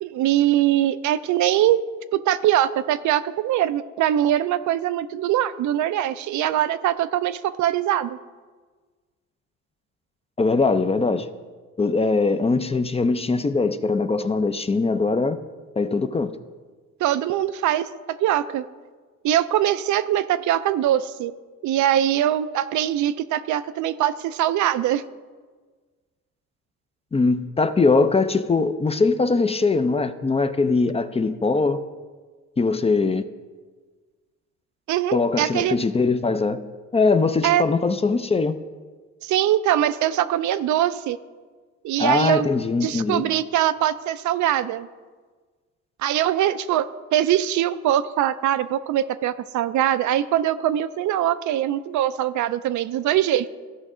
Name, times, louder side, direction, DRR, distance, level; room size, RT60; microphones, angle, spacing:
voice 1, 0.0-1.8 2.1-8.2 17.0-17.9 18.2-18.6 19.2-21.3 21.6-25.0 34.9-35.8 37.4-37.6 39.2-41.2 41.8-42.5 42.8-44.9 46.0-46.9 47.1-53.5, right 12 dB, 75° right, 13 dB, 0.5 m, -22 dB
voice 2, 10.4-11.3 11.8-15.4 15.8-16.3 27.1-31.8 32.6-33.2 35.1-36.6 36.9-38.6 42.0-43.2, left 3 dB, 20° left, 11 dB, 0.4 m, -21 dB
14.5 x 5.2 x 3.7 m, 1.4 s
cardioid pair, 90°, 30 cm